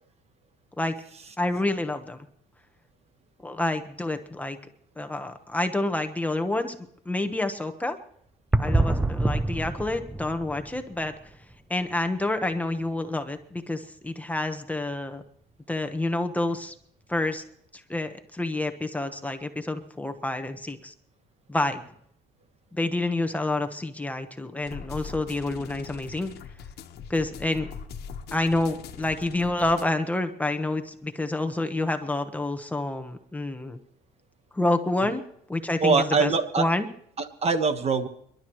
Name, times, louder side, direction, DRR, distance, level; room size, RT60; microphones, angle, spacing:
voice 1, 1.4-2.2 3.4-4.6 5.0-6.7 7.0-8.0 8.6-11.1 11.7-15.2 15.7-16.7 17.1-17.4 17.7-20.9 21.5-21.8 22.7-26.3 27.1-27.7 28.3-33.8 34.5-35.2 35.5-36.3 36.6-36.9, left 2 dB, 10° left, 6 dB, 1.1 m, -28 dB
sound 1, 8.5-11.5 11.8-11.9 12.5-12.6 17.2-17.3, right 2 dB, 10° right, 0.5 m, -27 dB
sound 2, 24.6-29.8, left 7 dB, 70° left, 1.3 m, -41 dB
voice 2, 35.8-36.7 37.2-38.1, right 4 dB, 40° right, 9 dB, 1.3 m, -23 dB
29.5 x 12.0 x 3.1 m, 0.69 s
cardioid pair, 110°, 17 cm